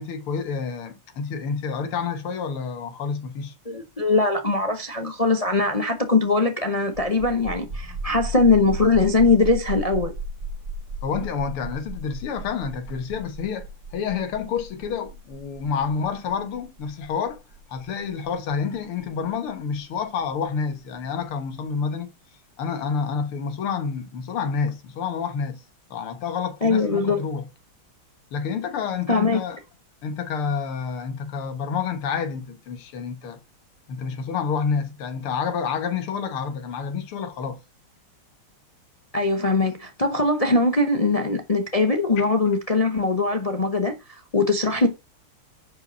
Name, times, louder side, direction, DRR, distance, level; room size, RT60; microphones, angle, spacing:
voice 1, 0.0-3.5 11.0-17.4 17.7-22.1 22.6-25.6 25.9-27.4 28.3-29.6 30.0-33.4 33.9-37.6 42.2-42.4 43.3-43.4, left 6 dB, 90° left, 2.2 m, -29 dB
voice 2, 3.7-10.1 26.6-27.2 29.1-29.4 39.1-44.9, left 3 dB, 65° left, 0.3 m, -21 dB
sound 1, 6.9-20.2, right 1 dB, 60° right, 4.8 m, -35 dB
10.0 x 5.1 x 5.4 m
omnidirectional pair, 2.3 m